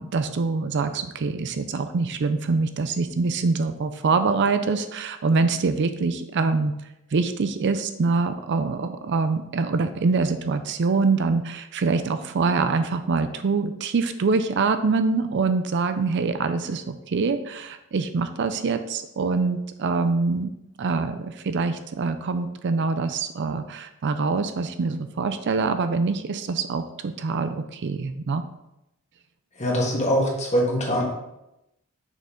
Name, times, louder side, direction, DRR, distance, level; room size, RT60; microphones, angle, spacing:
voice 1, 0.0-6.7 7.1-20.5 20.8-28.4, right 4 dB, 55° right, 10 dB, 0.4 m, -24 dB
voice 2, 29.6-31.0, equal, 35° left, -2 dB, 1.6 m, -23 dB
6.4 x 5.4 x 3.7 m, 0.88 s
head